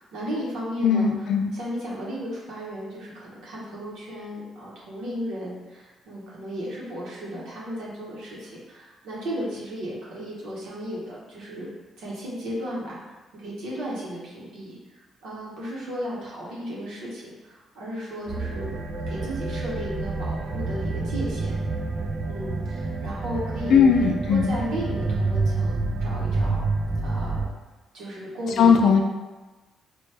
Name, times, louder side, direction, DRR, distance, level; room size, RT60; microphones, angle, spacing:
voice 1, 0.0-11.7 12.0-18.7 19.1-21.5 22.3-23.8 24.2-26.7 27.0-27.5 27.9-28.9, equal, 85° right, -6 dB, 0.9 m, -35 dB
voice 2, 0.8-1.5 23.7-24.5 28.6-29.0, left 6 dB, 70° left, 4 dB, 0.3 m, -18 dB
sound 1, 18.3-27.5, right 3 dB, 40° right, 0.3 m, -28 dB
3.0 x 2.2 x 3.2 m, 1.2 s
cardioid pair, 90°, 0 cm